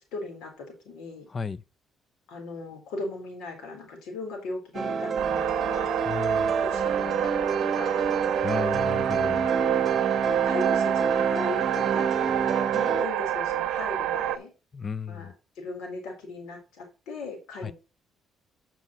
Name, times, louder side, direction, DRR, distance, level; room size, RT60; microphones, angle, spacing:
voice 1, 0.1-1.3 2.3-6.0 6.6-8.1 10.3-12.1 12.7-14.5 15.1-17.7, left 2 dB, 85° left, 3.9 m, -38 dB
voice 2, 1.3-1.6 6.1-6.5 8.4-9.5 14.7-15.3 17.6-17.7, left 5 dB, 35° left, 0.5 m, -34 dB
sound 1, 4.7-13.1, right 6 dB, 45° right, 1.0 m, -27 dB
sound 2, 5.2-14.4, right 12 dB, 85° right, 0.7 m, -29 dB
8.1 x 6.0 x 4.1 m
cardioid pair, 100°, 0 cm